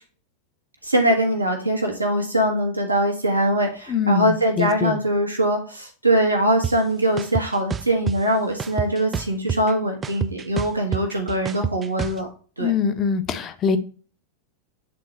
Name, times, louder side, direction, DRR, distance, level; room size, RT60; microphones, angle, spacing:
voice 1, 0.8-12.3 12.6-12.7, right 1 dB, 85° right, 1.4 m, -22 dB
voice 2, 3.9-5.0 12.6-13.8, left 6 dB, 30° left, 0.8 m, -23 dB
sound 1, 6.6-6.7 7.2-8.2 8.6-9.7 10.0-12.2, right 7 dB, 20° right, 0.3 m, -27 dB
8.5 x 3.8 x 3.1 m
figure-of-eight pair, 90°, 0 cm